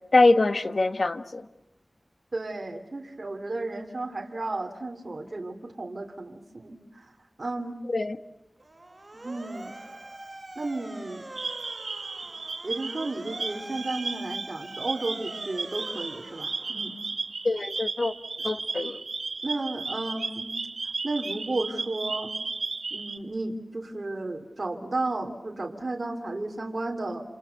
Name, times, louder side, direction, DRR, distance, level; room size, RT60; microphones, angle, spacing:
voice 1, 0.1-1.4 7.9-8.2 17.4-18.1 18.4-19.0, left 2 dB, 60° left, 11 dB, 1.5 m, -23 dB
voice 2, 2.3-7.1 7.4-7.8 9.1-9.8 10.6-11.3 12.6-16.9 19.4-20.5 21.0-22.3 22.9-27.2, right 2 dB, 50° right, 3 dB, 3.1 m, -33 dB
Motor vehicle (road) / Siren, 8.6-17.2, right 2 dB, 35° right, 1.9 m, -44 dB
sound 1, 11.4-23.2, right 4 dB, 75° right, 2.2 m, -34 dB
29.0 x 27.5 x 6.7 m, 0.96 s
wide cardioid pair, 55°, 0 cm